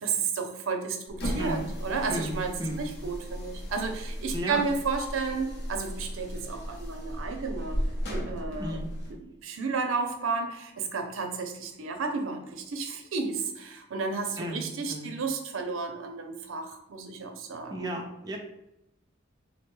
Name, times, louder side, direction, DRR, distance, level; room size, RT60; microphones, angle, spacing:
voice 1, 0.0-2.5 2.8-7.8 8.1-8.8 9.4-17.8, right 4 dB, 85° right, 5 dB, 0.5 m, -32 dB
sound 1, 1.1-9.2, equal, 55° left, 0.7 m, -35 dB
voice 2, 2.1-2.8 4.3-4.6 8.6-8.9 14.4-14.6 14.9-15.1 17.7-18.4, equal, 20° right, 0 dB, 0.4 m, -34 dB
3.5 x 2.2 x 3.0 m, 0.85 s
head